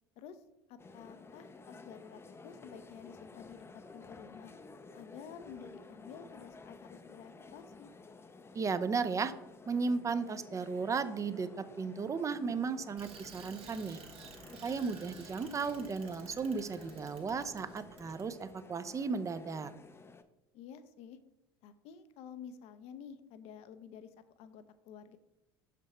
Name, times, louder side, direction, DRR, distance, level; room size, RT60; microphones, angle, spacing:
voice 1, 0.7-4.5 4.9-7.9 20.5-21.2 21.6-24.1 24.4-25.2, left 7 dB, 55° left, 11 dB, 0.7 m, -51 dB
sound 1, 0.8-20.2, left 3 dB, 20° left, 0.6 m, -53 dB
voice 2, 8.5-9.3 9.7-14.0 14.6-19.7, right 5 dB, 25° right, 11 dB, 0.6 m, -35 dB
Bicycle, 13.0-18.5, right 5 dB, 50° right, 1.3 m, -53 dB
6.4 x 5.1 x 4.3 m, 0.90 s
hypercardioid pair, 70°, 13 cm